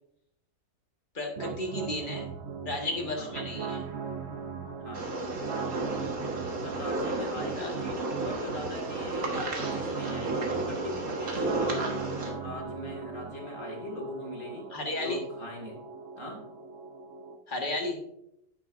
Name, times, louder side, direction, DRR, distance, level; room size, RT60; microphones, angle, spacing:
voice 1, 1.1-2.3 2.6-3.8 7.5-7.7 14.7-15.2 17.5-18.0, left 2 dB, 35° left, 1 dB, 1.7 m, -33 dB
sound 1, 1.4-17.4, right 5 dB, 55° right, 1.0 m, -39 dB
sound 2, 4.9-12.3, right 2 dB, 75° right, 1.9 m, -33 dB
voice 2, 6.5-14.7 15.0-15.8 16.2-16.5, left 1 dB, 60° left, 0 dB, 2.5 m, -40 dB
10.0 x 8.8 x 2.6 m, 0.78 s
omnidirectional pair, 1.5 m